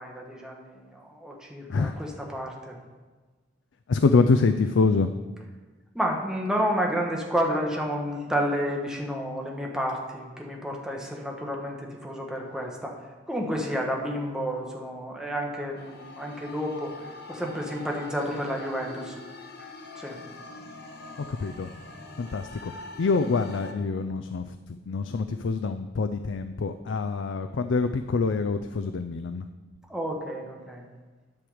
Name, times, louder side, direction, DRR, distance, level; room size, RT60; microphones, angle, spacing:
voice 1, 0.0-2.8 5.9-13.0 13.3-16.9 17.3-19.1 19.9-20.2 29.9-30.8, equal, 5° right, -1 dB, 1.4 m, -30 dB
voice 2, 3.9-5.1 21.3-21.7 22.2-22.7 23.0-24.6 24.9-29.5, left 4 dB, 85° left, 9 dB, 0.4 m, -25 dB
sound 1, 15.8-23.7, left 2 dB, 60° left, 0.9 m, -44 dB
10.5 x 6.3 x 5.0 m, 1.3 s
head